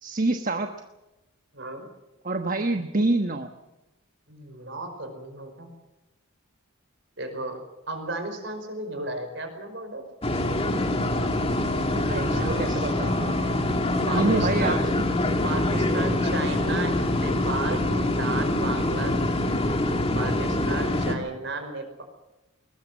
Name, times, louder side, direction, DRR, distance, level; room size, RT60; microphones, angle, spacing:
voice 1, 0.0-0.7 2.2-3.5 11.9-13.3 14.1-14.8 15.8-15.9, right 2 dB, 40° right, 6 dB, 1.2 m, -26 dB
voice 2, 1.5-1.9 4.3-5.7 7.2-10.0 12.0-13.1 14.1-14.8 15.4-19.2 19.6-19.8 20.1-22.0, right 2 dB, 60° right, 7 dB, 5.2 m, -34 dB
sound 1, 10.2-21.2, left 1 dB, 30° left, 2.1 m, -25 dB
21.5 x 20.5 x 7.4 m, 0.97 s
head